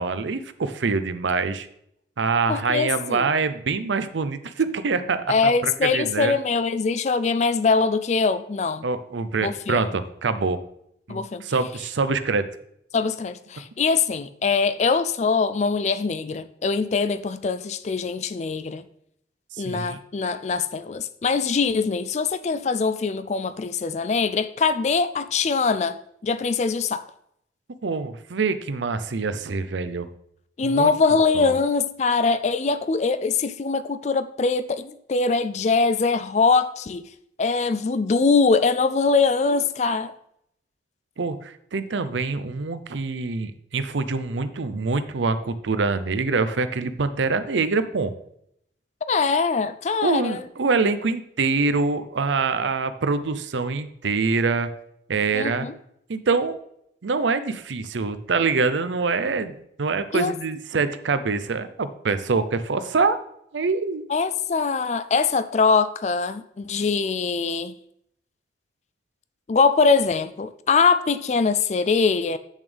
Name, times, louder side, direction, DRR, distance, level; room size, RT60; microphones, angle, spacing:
voice 1, 0.0-1.7 2.2-6.4 8.8-10.6 11.1-12.4 19.5-20.0 27.8-30.1 30.6-30.9 31.3-31.6 41.2-48.1 50.0-54.7 55.1-55.7 56.1-56.6 57.0-63.2 63.5-64.1, right 4 dB, 85° right, 12 dB, 0.6 m, -25 dB
voice 2, 2.5-3.3 5.3-8.9 9.4-9.8 11.1-11.4 12.9-18.8 19.6-26.0 26.2-27.0 30.6-37.0 37.4-40.1 49.1-50.4 55.3-55.7 60.1-60.4 64.1-67.7 69.5-72.4, left 4 dB, 40° left, 12 dB, 0.3 m, -22 dB
8.2 x 7.1 x 3.4 m, 0.73 s
head